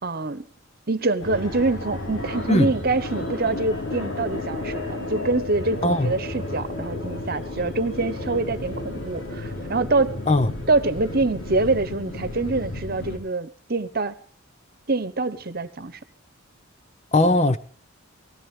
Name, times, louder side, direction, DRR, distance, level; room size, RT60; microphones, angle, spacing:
voice 1, 0.0-0.5 0.9-10.1 10.7-14.2 14.9-16.0, right 3 dB, 45° right, 1.1 m, -25 dB
Fixed-wing aircraft airplane, 1.2-13.2, left 2 dB, 75° left, 4.9 m, -32 dB
voice 2, 5.8-6.1 10.3-10.5 17.1-17.6, left 2 dB, 30° left, 0.9 m, -19 dB
19.5 x 17.0 x 3.4 m
head